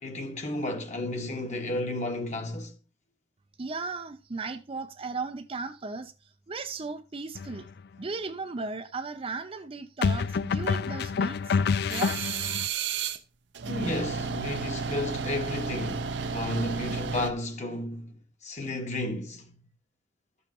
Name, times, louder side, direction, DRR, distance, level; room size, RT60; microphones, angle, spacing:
voice 1, 0.0-2.7 13.7-18.2 18.4-19.5, left 2 dB, 40° left, 1.4 m, -33 dB
voice 2, 3.6-6.1 6.5-7.7 8.0-11.5 11.9-12.3, right 4 dB, 30° right, 0.5 m, -36 dB
sound 1, 7.4-7.6 10.0-12.7, left 5 dB, 60° left, 0.3 m, -27 dB
sound 2, 11.9-13.2 13.5-17.3, right 5 dB, 65° right, 0.7 m, -32 dB
12.5 x 7.0 x 2.9 m
head